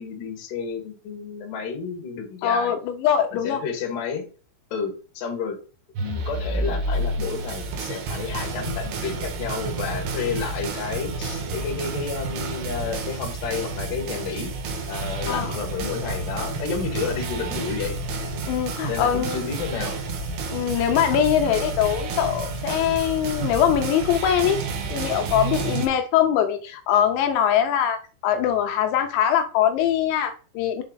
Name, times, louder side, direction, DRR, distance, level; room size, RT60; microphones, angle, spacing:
voice 1, 0.0-2.8 3.4-4.2 4.7-5.6 6.0-14.5 14.9-18.0 18.9-20.0, left 5 dB, 60° left, 2.4 m, -31 dB
voice 2, 2.4-3.6 15.3-15.6 18.5-19.5 20.5-24.6 24.9-30.8, left 9 dB, 85° left, 2.6 m, -22 dB
sound 1, 6.0-25.9, right 3 dB, 70° right, 2.7 m, -30 dB
7.0 x 4.3 x 3.8 m
omnidirectional pair, 5.7 m